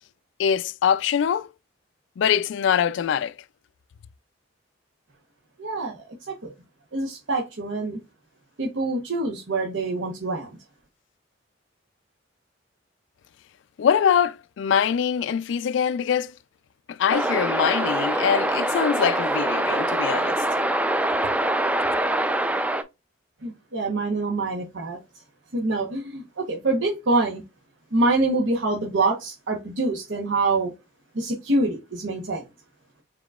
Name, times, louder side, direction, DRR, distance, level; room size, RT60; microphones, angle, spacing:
voice 1, 0.4-1.5 2.2-3.4 13.8-16.3 16.9-20.4, left 8 dB, 70° left, 0.3 m, -23 dB
voice 2, 5.6-6.1 6.4-6.5 6.9-8.0 8.6-10.5 23.4-25.0 25.5-27.4 27.9-30.7 31.1-32.4, right 2 dB, 75° right, 1.0 m, -25 dB
sound 1, 17.1-22.8, right 1 dB, 5° right, 0.4 m, -24 dB
5.0 x 3.7 x 2.3 m
head